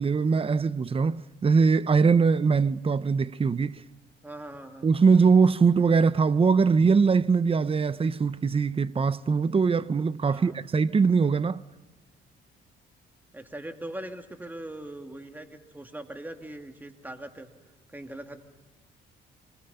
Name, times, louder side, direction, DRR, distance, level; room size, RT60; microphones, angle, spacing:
voice 1, 0.0-3.8 4.8-11.6, right 5 dB, 30° right, 0.7 m, -22 dB
voice 2, 4.2-4.9 10.3-10.7 13.3-17.5 17.9-18.4, right 1 dB, 10° right, 2.4 m, -41 dB
27.0 x 22.0 x 5.6 m
cardioid pair, 90°, 20 cm